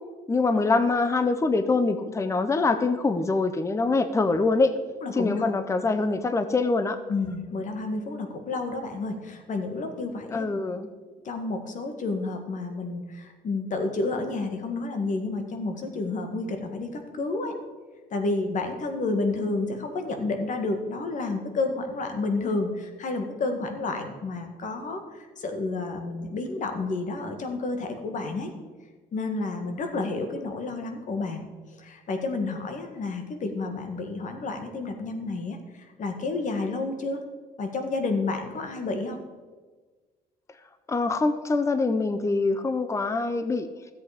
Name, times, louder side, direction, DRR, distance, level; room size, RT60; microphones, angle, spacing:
voice 1, 0.3-4.7 5.1-7.0 10.3-10.9 40.9-43.7, left 3 dB, 15° left, 10 dB, 0.7 m, -24 dB
voice 2, 5.0-5.4 7.1-10.5 11.2-17.5 18.1-28.5 29.1-31.5 31.7-37.2 37.6-39.2, left 3 dB, 50° left, 5 dB, 1.8 m, -30 dB
13.5 x 8.0 x 5.1 m, 1.4 s
cardioid pair, 110°, 17 cm